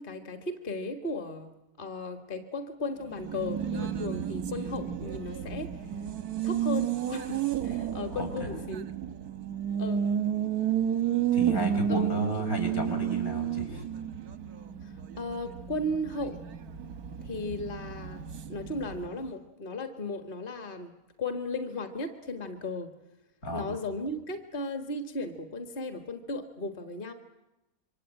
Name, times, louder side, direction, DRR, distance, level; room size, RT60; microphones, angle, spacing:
voice 1, 0.0-1.5 1.8-5.9 6.4-9.0 9.8-10.0 11.9-12.4 14.8-16.4 17.2-20.9 21.2-22.9 23.5-27.1, left 2 dB, 35° left, 7 dB, 1.7 m, -36 dB
Race car auto racing, 3.0-19.3, right 9 dB, 90° right, 1.7 m, -32 dB
voice 2, 8.2-8.5 11.3-13.8 23.4-23.7, right 2 dB, 75° left, 2 dB, 6.4 m, -33 dB
27.0 x 24.0 x 8.9 m, 0.95 s
omnidirectional pair, 1.6 m